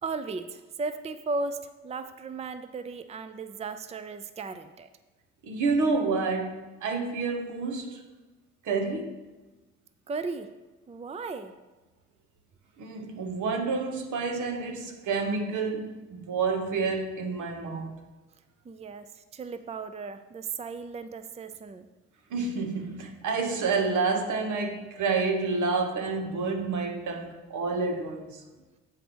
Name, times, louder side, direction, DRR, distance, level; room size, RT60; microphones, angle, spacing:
voice 1, 0.0-4.9 10.1-10.5 10.9-11.5 18.6-21.9, right 4 dB, 20° right, 0.5 m, -36 dB
voice 2, 5.4-8.0 8.6-9.2 12.8-18.0 22.3-28.4, right 4 dB, 75° right, 1.2 m, -29 dB
8.0 x 4.8 x 6.2 m
cardioid pair, 90°, 30 cm